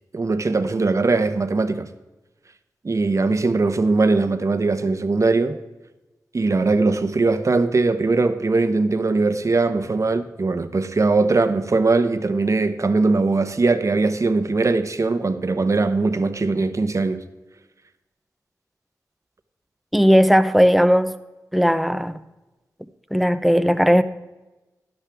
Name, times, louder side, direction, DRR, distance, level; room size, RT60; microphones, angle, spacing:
voice 1, 0.1-1.9 2.8-5.6 6.3-17.2, right 3 dB, 50° right, 0.9 m, -20 dB
voice 2, 19.9-21.1 21.5-22.2 23.1-24.0, equal, ahead, 0.7 m, -17 dB
12.0 x 11.5 x 3.5 m
cardioid pair, 55°, 7 cm